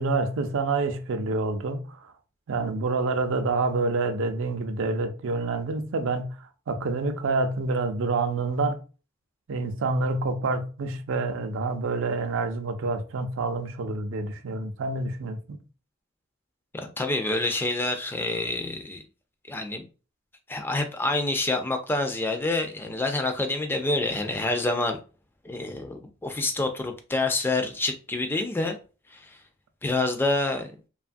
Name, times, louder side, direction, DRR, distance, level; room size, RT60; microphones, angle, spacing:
voice 1, 0.0-2.0 2.5-6.4 6.7-8.8 9.5-15.6, right 3 dB, 65° right, 0.4 m, -27 dB
voice 2, 16.7-19.0 19.5-19.9 20.5-25.0 25.4-28.8 29.1-29.4 29.8-30.7, left 2 dB, 10° left, 0.3 m, -27 dB
2.8 x 2.3 x 2.5 m
head